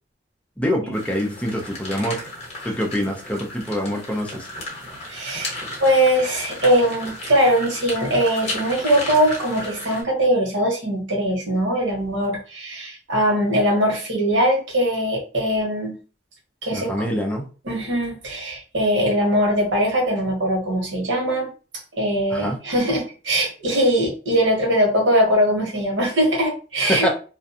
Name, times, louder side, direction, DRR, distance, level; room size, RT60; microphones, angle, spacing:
voice 1, 0.6-2.3 2.6-4.5 16.7-17.5 22.3-22.6 26.8-27.1, equal, 5° left, 1 dB, 0.5 m, -25 dB
sound 1, 0.9-10.0, left 1 dB, 40° left, 1.1 m, -34 dB
voice 2, 5.1-5.5 5.8-16.0 16.6-16.9 17.7-21.5 21.9-27.1, equal, 85° right, -1 dB, 1.1 m, -21 dB
2.4 x 2.2 x 2.7 m, 0.36 s
head